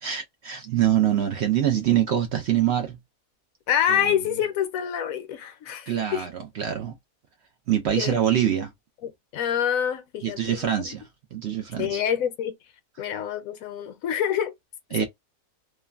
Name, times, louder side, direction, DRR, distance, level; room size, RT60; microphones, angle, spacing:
voice 1, 0.0-3.0 3.9-4.1 5.9-6.9 7.7-8.7 10.2-11.0 11.3-12.0 14.9-15.1, right 10 dB, 65° right, 0.7 m, -24 dB
voice 2, 3.7-6.3 8.0-8.2 9.0-10.9 11.8-12.5 13.0-14.5, left 9 dB, 75° left, 1.1 m, -27 dB
3.1 x 2.2 x 2.3 m
omnidirectional pair, 1.5 m